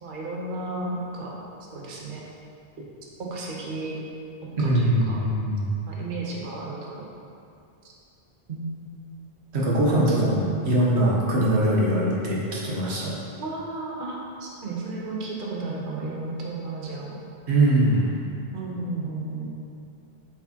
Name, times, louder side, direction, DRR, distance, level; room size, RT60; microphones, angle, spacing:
voice 1, 0.0-1.3 1.7-2.2 3.2-4.0 4.6-5.2 5.9-7.1 8.5-8.7 10.1-10.9 13.4-17.2 18.5-19.5, right 3 dB, 55° right, -3 dB, 1.0 m, -33 dB
voice 2, 4.6-5.7 9.5-13.1 17.5-18.0, right 1 dB, 85° right, -4 dB, 1.4 m, -22 dB
7.4 x 4.8 x 2.9 m, 2.6 s
omnidirectional pair, 1.1 m